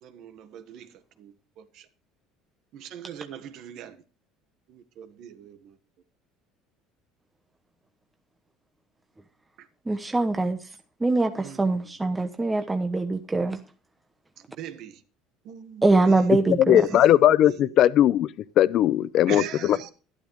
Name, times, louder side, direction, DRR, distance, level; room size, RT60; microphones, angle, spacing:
voice 1, 0.0-1.9 2.7-4.0 4.7-5.8 9.6-9.7 11.3-11.9 14.4-15.0 15.4-16.3 16.7-17.7 19.3-19.9, right 9 dB, 60° right, 1.4 m, -41 dB
voice 2, 9.9-10.6 11.0-13.6 15.8-16.8, right 3 dB, 10° right, 1.0 m, -23 dB
voice 3, 16.6-18.3 18.6-19.8, left 12 dB, 55° left, 0.7 m, -19 dB
12.0 x 11.5 x 3.1 m
supercardioid pair, 115°, 0 cm